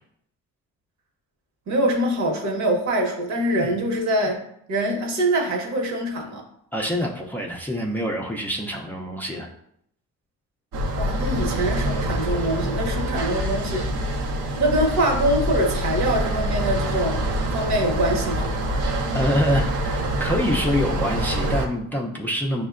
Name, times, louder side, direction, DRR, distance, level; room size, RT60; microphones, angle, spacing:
voice 1, 1.7-4.4 4.7-6.5 10.9-13.9 14.6-18.5, right 1 dB, 65° right, 1 dB, 1.0 m, -24 dB
voice 2, 6.7-9.5 19.1-22.7, equal, 5° left, -1 dB, 0.4 m, -26 dB
sound 1, 10.7-21.7, equal, 80° right, 0.7 m, -25 dB
6.3 x 2.1 x 2.4 m, 0.71 s
cardioid pair, 90°, 30 cm